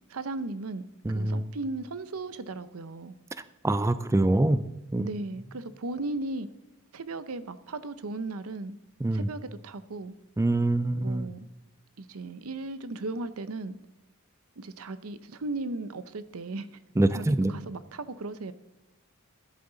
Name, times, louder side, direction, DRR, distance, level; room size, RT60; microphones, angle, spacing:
voice 1, 0.1-0.8 1.1-3.1 5.0-6.5 6.9-8.8 9.1-10.1 11.0-11.5 12.0-13.8 14.6-16.7 17.1-18.5, right 2 dB, 85° right, 14 dB, 0.7 m, -36 dB
voice 2, 1.0-1.4 3.6-4.6 4.9-5.1 9.0-9.3 10.4-11.3 17.0-17.5, right 1 dB, 15° right, 13 dB, 0.4 m, -24 dB
13.0 x 11.0 x 3.9 m, 1.0 s
head